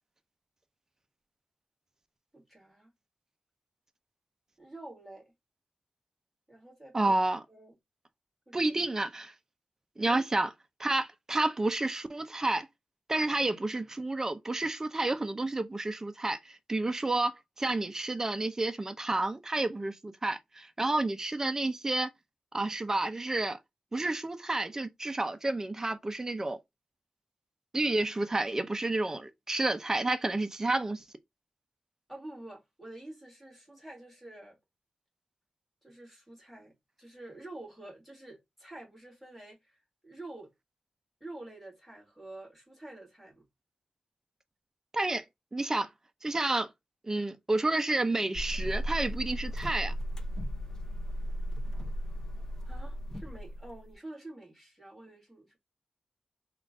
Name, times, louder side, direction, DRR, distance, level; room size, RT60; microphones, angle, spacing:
voice 1, 2.3-2.9 4.6-5.3 6.5-7.2 7.5-7.8 8.5-8.6 10.0-10.3 32.1-34.6 35.8-36.7 37.0-40.5 41.2-43.4 52.6-55.6, right 2 dB, ahead, 2.0 m, -48 dB
voice 2, 6.9-7.4 8.5-9.3 10.0-10.5 10.8-12.7 13.1-22.1 22.5-23.6 23.9-26.6 27.7-31.0 44.9-45.2 45.5-45.9 46.2-46.7 47.1-49.9, right 2 dB, 25° right, 0.5 m, -30 dB
sound 1, 48.4-53.9, equal, 25° left, 0.6 m, -35 dB
3.7 x 2.4 x 3.6 m
wide cardioid pair, 110°, 2 cm